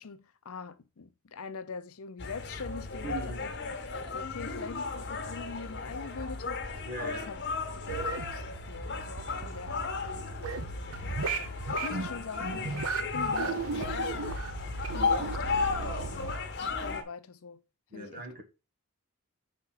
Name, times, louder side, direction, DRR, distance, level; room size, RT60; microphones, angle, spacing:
voice 1, 0.0-7.4 8.1-12.8 13.1-14.3 14.9-16.3 16.6-17.6 17.9-18.4, left 5 dB, 75° left, 0.6 m, -44 dB
sound 1, 2.2-17.0, left 4 dB, 55° left, 1.2 m, -35 dB
voice 2, 3.0-3.4 6.8-7.3 17.9-18.4, right 3 dB, 40° right, 1.4 m, -39 dB
sound 2, 7.9-16.4, right 4 dB, 80° right, 0.8 m, -36 dB
4.9 x 4.2 x 5.7 m
head